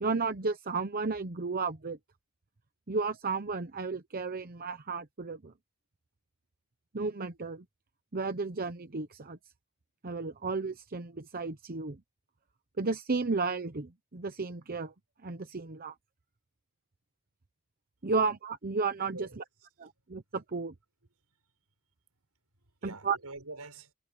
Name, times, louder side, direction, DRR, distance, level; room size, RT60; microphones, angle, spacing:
voice 1, 0.0-2.0 2.9-5.5 6.9-7.6 8.1-9.4 10.0-12.0 12.8-14.9 15.2-15.9 18.0-19.2 19.8-20.7 23.0-23.2, right 4 dB, 40° right, 0.9 m, -33 dB
voice 2, 19.1-19.9 21.3-21.4 22.6-23.9, right 3 dB, 80° right, 6.5 m, -47 dB
head